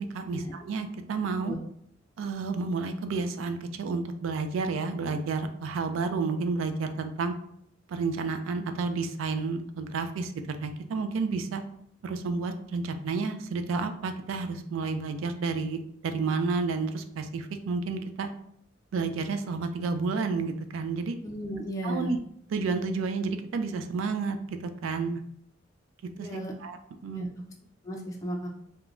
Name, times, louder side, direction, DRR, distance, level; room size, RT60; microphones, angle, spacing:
voice 1, 0.0-1.6 2.2-7.4 7.9-11.6 12.0-18.3 18.9-21.2 21.8-22.2 22.5-25.2 26.2-27.3, right 4 dB, 85° right, 8 dB, 0.3 m, -31 dB
voice 2, 21.2-22.1 26.2-26.5 27.1-27.3 27.8-28.5, equal, 20° left, -1 dB, 0.3 m, -34 dB
2.9 x 2.2 x 2.4 m, 0.71 s
head